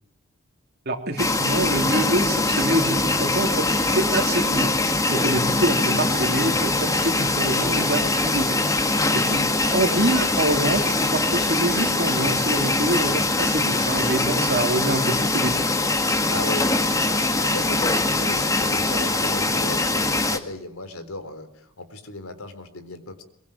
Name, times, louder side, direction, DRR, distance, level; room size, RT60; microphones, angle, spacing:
voice 1, 0.9-9.0 9.3-9.5 9.7-15.7, right 1 dB, 50° right, 3 dB, 3.4 m, -26 dB
sound 1, 1.2-20.4, left 2 dB, 15° left, 1.7 m, -22 dB
voice 2, 5.1-5.7 8.9-9.3 16.3-23.2, left 2 dB, 80° left, 9 dB, 3.8 m, -36 dB
sound 2, 7.4-17.0, right 1 dB, 10° right, 4.3 m, -41 dB
23.0 x 22.5 x 8.9 m, 0.67 s
head